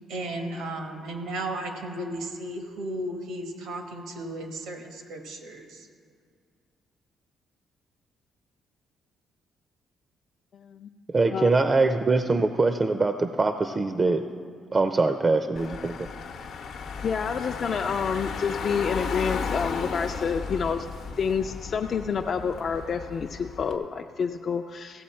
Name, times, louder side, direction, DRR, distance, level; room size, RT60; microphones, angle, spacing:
voice 1, 0.1-5.9, right 1 dB, 90° right, 4 dB, 1.3 m, -34 dB
voice 2, 10.5-10.9 11.3-11.5 17.0-20.9 21.2-25.0, left 6 dB, 50° left, 4 dB, 0.4 m, -28 dB
voice 3, 11.1-14.2 14.7-16.1, right 3 dB, 30° right, 9 dB, 0.5 m, -23 dB
Car / Engine, 15.6-23.8, left 5 dB, 70° left, 0.8 m, -35 dB
15.5 x 7.7 x 4.3 m, 2.2 s
cardioid pair, 90°, 0 cm